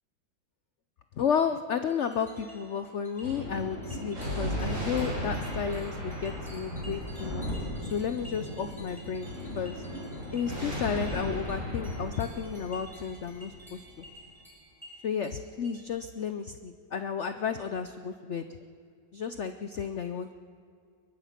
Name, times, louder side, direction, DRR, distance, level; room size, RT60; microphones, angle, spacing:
voice 1, 1.2-7.4 7.9-9.8 10.3-13.8 15.0-18.4 19.1-20.3, left 7 dB, 65° left, 9 dB, 0.7 m, -32 dB
sound 1, 1.9-15.8, equal, ahead, 6.8 m, -53 dB
Thunder, 3.2-14.1, equal, 40° right, 7.4 m, -36 dB
22.5 x 21.5 x 5.9 m, 2.3 s
omnidirectional pair, 2.0 m